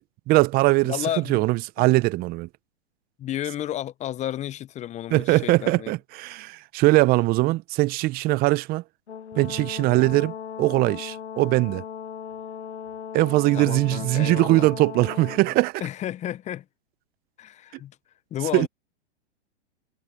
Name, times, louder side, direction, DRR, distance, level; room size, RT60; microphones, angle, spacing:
voice 1, 0.3-2.5 5.1-8.8 9.3-11.8 13.1-15.8 18.5-18.7, right 20 dB, 30° right, 0.7 m, -21 dB
voice 2, 0.9-1.4 1.8-1.9 3.2-5.9 13.5-14.7 15.5-15.6 15.8-16.6 17.4-18.0 18.3-18.7, left 12 dB, 20° left, 0.8 m, -32 dB
Brass instrument, 9.1-15.5, left 8 dB, 85° left, 1.0 m, -37 dB
hypercardioid pair, 115°, 33 cm